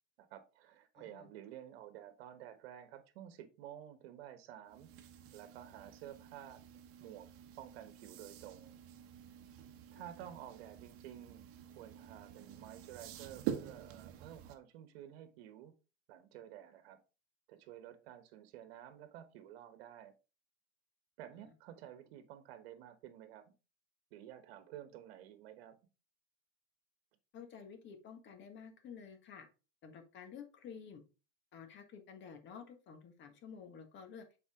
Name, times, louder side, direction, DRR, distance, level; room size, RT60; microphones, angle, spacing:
voice 1, 0.2-4.9 5.3-6.6 7.0-7.3 7.6-8.7 9.9-11.4 11.8-15.7 16.1-17.0 17.5-20.1 21.2-23.5 24.1-25.8, right 11 dB, 75° right, 1.2 m, -52 dB
voice 2, 1.0-1.3 10.0-10.3 21.3-21.5 27.3-29.5 29.8-31.0 31.5-34.3, left 6 dB, 40° left, 1.7 m, -52 dB
sound 1, 4.7-14.5, right 10 dB, 45° right, 1.1 m, -47 dB
7.2 x 4.3 x 3.6 m
supercardioid pair, 125°, 31 cm